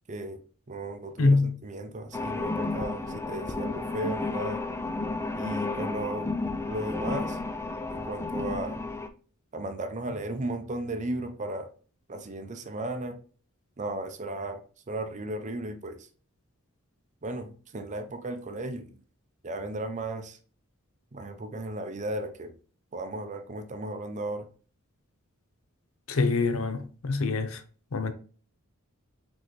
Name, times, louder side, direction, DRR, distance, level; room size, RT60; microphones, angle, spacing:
voice 1, 0.1-0.4 0.7-4.6 5.4-6.3 6.7-7.4 7.9-8.8 9.5-11.7 12.1-13.2 13.8-14.6 14.9-16.1 17.2-19.0 19.4-20.4 21.1-22.5 22.9-24.5, right 1 dB, 35° right, 0.6 m, -35 dB
voice 2, 1.2-1.5 26.1-27.6 27.9-28.1, left 3 dB, 65° left, 0.6 m, -25 dB
sound 1, 2.1-9.1, left 3 dB, 10° left, 0.3 m, -32 dB
4.1 x 3.9 x 3.1 m
head